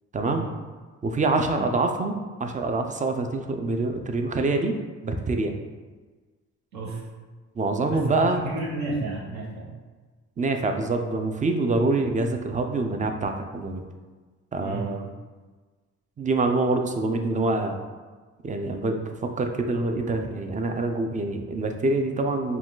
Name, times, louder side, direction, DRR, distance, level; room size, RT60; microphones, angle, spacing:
voice 1, 0.1-0.5 1.0-4.7 5.0-5.5 7.6-8.4 10.4-13.8 14.5-15.1 16.2-17.8 18.4-22.6, right 3 dB, 25° right, 5 dB, 0.5 m, -25 dB
voice 2, 7.9-9.7 14.6-14.9, right 2 dB, 70° right, -2 dB, 1.2 m, -32 dB
4.8 x 2.4 x 3.7 m, 1.4 s
cardioid pair, 90°, 30 cm